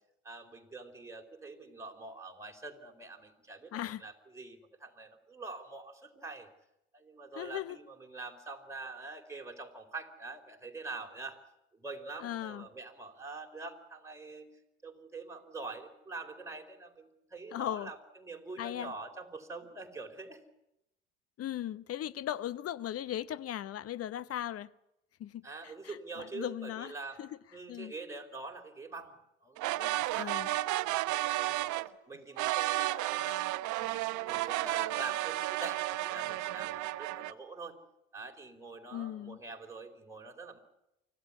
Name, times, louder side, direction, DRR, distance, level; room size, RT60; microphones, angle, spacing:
voice 1, 0.2-6.5 6.9-11.4 11.7-14.5 14.8-20.4 25.4-27.2 27.5-29.2 29.4-30.4 30.9-31.7 32.1-37.8 38.1-40.6, right 3 dB, 10° right, 4.3 m, -45 dB
voice 2, 3.7-4.0 7.4-7.8 12.2-12.7 17.5-17.9 18.6-18.9 21.4-24.7 25.2-27.3 27.7-27.9 30.2-30.5 38.9-39.4, left 11 dB, 45° left, 0.8 m, -38 dB
sound 1, 29.6-31.9 32.4-37.3, right 17 dB, 55° right, 0.9 m, -32 dB
25.0 x 15.5 x 9.7 m
hypercardioid pair, 65°, 35 cm